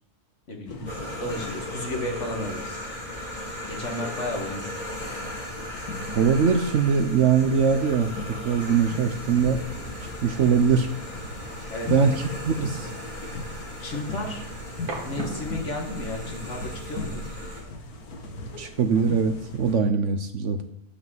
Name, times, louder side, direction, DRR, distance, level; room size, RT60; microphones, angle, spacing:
voice 1, 0.5-0.8 1.2-2.9 3.7-4.8 11.7-11.9 13.8-14.4 15.0-17.2, left 1 dB, 50° left, 1 dB, 2.1 m, -33 dB
sound 1, 0.6-2.0 4.8-19.7, left 2 dB, 85° left, 1.8 m, -39 dB
sound 2, 0.9-17.6, left 1 dB, 30° left, 2.3 m, -37 dB
voice 2, 6.1-8.1 8.4-9.6 10.0-10.9 11.9-12.9 18.6-20.6, right 6 dB, 60° right, 8 dB, 1.0 m, -22 dB
sound 3, 9.3-15.5, right 3 dB, 85° right, 2.0 m, -40 dB
10.0 x 6.3 x 7.3 m, 0.78 s
omnidirectional pair, 1.6 m